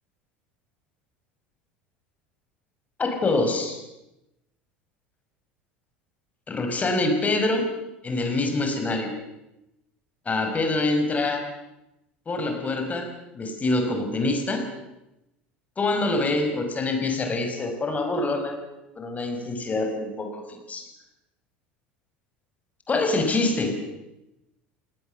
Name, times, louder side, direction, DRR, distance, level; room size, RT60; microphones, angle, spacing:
voice 1, 3.0-3.8 6.5-7.7 8.0-9.1 10.3-11.5 12.3-13.1 13.3-14.7 15.8-18.6 19.0-20.8 22.9-23.8, left 2 dB, 25° left, 5 dB, 5.7 m, -25 dB
28.5 x 19.0 x 6.9 m, 0.93 s
hypercardioid pair, 75°, 6 cm